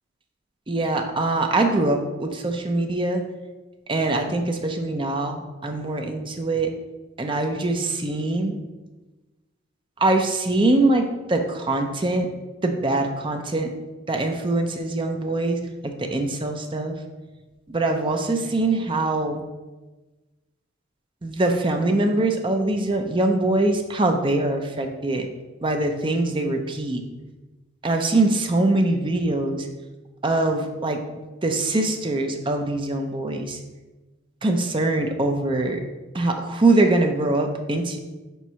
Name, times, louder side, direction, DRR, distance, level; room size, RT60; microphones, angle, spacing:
voice 1, 0.7-3.2 3.9-6.7 7.2-8.6 10.0-12.3 12.6-13.7 14.1-17.0 17.7-19.4 21.2-25.3 25.6-27.0 27.8-29.7 30.2-31.0 31.4-33.6 34.4-35.8 36.1-38.0, right 2 dB, 25° right, 4 dB, 0.6 m, -23 dB
5.2 x 4.6 x 5.5 m, 1.2 s
head